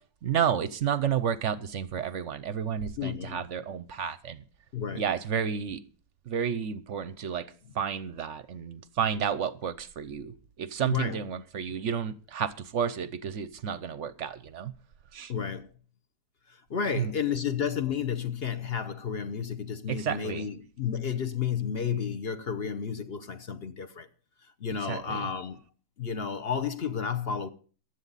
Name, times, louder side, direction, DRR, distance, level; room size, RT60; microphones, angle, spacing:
voice 1, 0.2-4.4 4.9-5.8 6.3-7.5 7.8-14.7 15.1-15.3 17.0-17.1 19.9-20.5 24.9-25.2, right 8 dB, 55° right, 0.8 m, -31 dB
voice 2, 3.0-3.4 4.7-5.0 10.8-11.2 15.3-15.7 16.7-24.1 24.6-25.6 26.0-27.5, left 7 dB, 45° left, 0.8 m, -31 dB
15.5 x 11.5 x 4.0 m
omnidirectional pair, 1.9 m